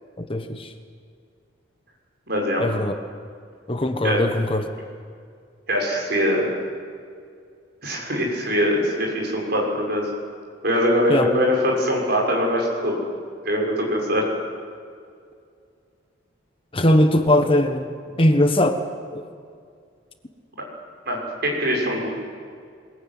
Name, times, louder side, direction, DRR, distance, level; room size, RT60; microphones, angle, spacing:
voice 1, 0.2-0.7 2.6-2.9 3.7-4.6 11.1-11.3 16.7-17.9 18.2-18.8 19.1-19.2, left 1 dB, 30° left, 7 dB, 1.3 m, -20 dB
voice 2, 2.3-2.8 4.0-4.2 5.7-6.5 7.8-10.1 10.6-13.0 13.4-14.2 21.1-22.1, equal, 55° right, -1 dB, 6.6 m, -22 dB
22.5 x 21.5 x 9.4 m, 2.2 s
head